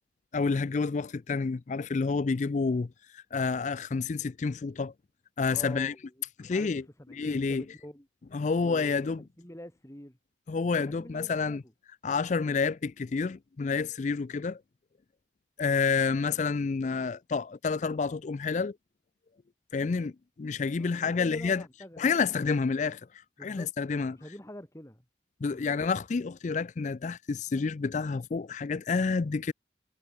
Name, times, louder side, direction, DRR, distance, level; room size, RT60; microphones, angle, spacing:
voice 1, 0.3-4.9 5.4-5.9 6.4-6.8 7.2-7.6 8.3-9.2 10.5-11.6 12.0-14.6 15.6-18.8 19.7-20.1 20.4-21.6 22.0-23.0 23.4-24.2 25.4-29.5, left 4 dB, 45° left, 0.4 m, -29 dB
voice 2, 5.5-8.1 8.6-10.2 10.8-11.7 20.8-22.5 23.4-23.7 24.1-25.0 25.5-25.8, equal, 15° left, 2.3 m, -47 dB
head